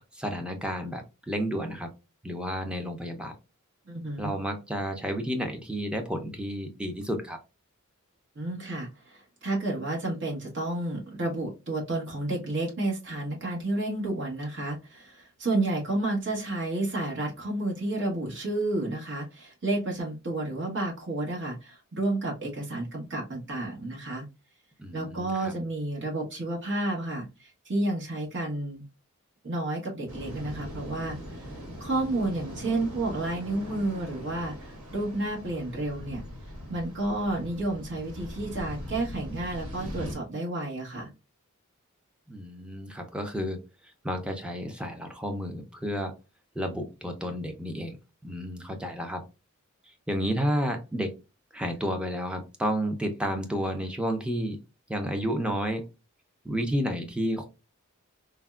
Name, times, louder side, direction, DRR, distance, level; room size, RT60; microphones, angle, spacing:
voice 1, 0.1-1.9 2.2-3.3 4.2-7.4 24.8-25.5 42.3-43.6 44.0-46.1 46.6-48.0 48.2-49.2 50.1-51.1 51.5-54.6 54.9-55.8 56.4-57.5, equal, 5° right, 4 dB, 0.4 m, -31 dB
voice 2, 3.9-4.3 8.3-24.2 24.9-28.8 29.4-31.2 31.8-36.2 36.7-41.1, right 2 dB, 55° right, -1 dB, 1.1 m, -31 dB
sound 1, 30.1-40.1, equal, 80° right, 1.3 m, -41 dB
3.4 x 2.1 x 2.3 m, 0.28 s
head